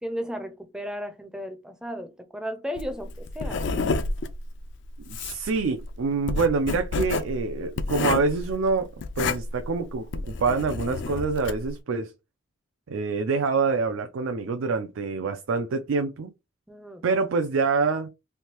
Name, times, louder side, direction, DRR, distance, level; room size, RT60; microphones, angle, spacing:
voice 1, 0.0-3.9 16.7-17.0, equal, 5° right, 0.4 m, -35 dB
Writing, 2.8-11.7, left 3 dB, 60° left, 0.4 m, -30 dB
voice 2, 5.1-8.9 9.2-12.1 12.9-16.3 17.0-18.1, right 4 dB, 80° right, 0.4 m, -26 dB
3.3 x 2.6 x 2.9 m
head